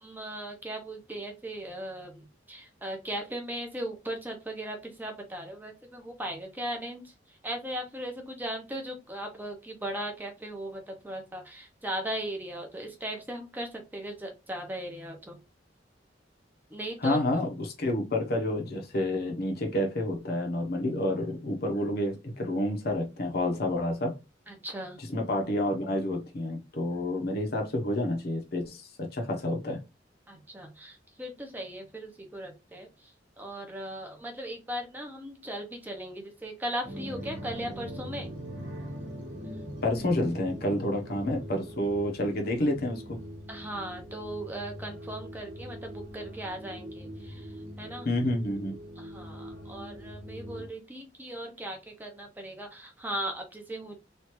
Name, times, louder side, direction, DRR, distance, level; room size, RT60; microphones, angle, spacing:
voice 1, 0.0-7.0 7.4-15.4 16.7-17.2 24.5-25.0 30.3-32.9 33.4-38.3 43.5-47.5 47.8-48.1 49.0-54.0, right 1 dB, 10° right, 0.6 m, -38 dB
voice 2, 17.0-24.1 25.0-29.8 39.8-43.2 48.0-48.8, left 1 dB, 55° left, 0.8 m, -29 dB
sound 1, 36.8-50.7, equal, 75° right, 1.0 m, -42 dB
3.2 x 2.4 x 2.9 m
head